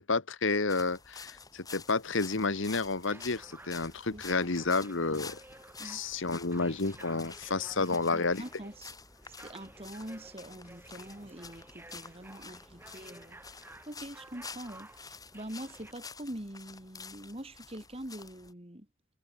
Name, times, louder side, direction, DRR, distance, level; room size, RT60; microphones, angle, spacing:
voice 1, 0.0-5.4 5.8-8.4, left 3 dB, 60° left, 1.2 m, -30 dB
sound 1, 0.7-18.5, left 4 dB, 15° left, 5.5 m, -50 dB
sound 2, 2.4-15.9, right 1 dB, 10° right, 7.4 m, -54 dB
voice 2, 7.8-9.0 9.4-13.4 13.9-18.9, right 1 dB, 25° right, 2.7 m, -44 dB
head